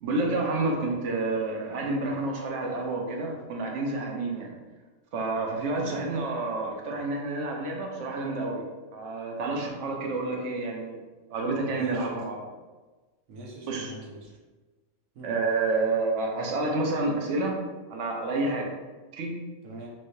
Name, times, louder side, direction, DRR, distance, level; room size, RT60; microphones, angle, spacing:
voice 1, 0.0-4.6 5.1-8.6 8.9-11.0 11.3-12.4 13.7-13.9 15.2-17.6 17.9-18.7 19.1-19.3, right 3 dB, 70° right, 1 dB, 0.9 m, -29 dB
voice 2, 11.7-12.2 13.3-14.3 15.1-15.4 19.6-19.9, right 2 dB, 90° right, -2 dB, 1.2 m, -43 dB
3.2 x 3.1 x 2.6 m, 1.3 s
omnidirectional pair, 1.3 m